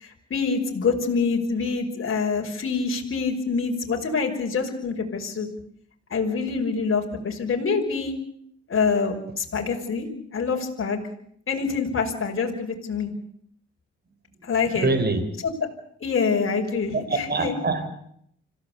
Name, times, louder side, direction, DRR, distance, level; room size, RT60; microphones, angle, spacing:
voice 1, 0.0-5.5 6.1-8.2 8.7-10.1 10.3-11.0 11.5-13.1 14.4-14.9 15.4-15.5 16.0-17.5, left 5 dB, 45° left, 5.8 m, -26 dB
voice 2, 14.7-15.2 16.9-17.9, right 3 dB, 35° right, 4.4 m, -24 dB
26.0 x 17.0 x 8.5 m
supercardioid pair, 60°, 29 cm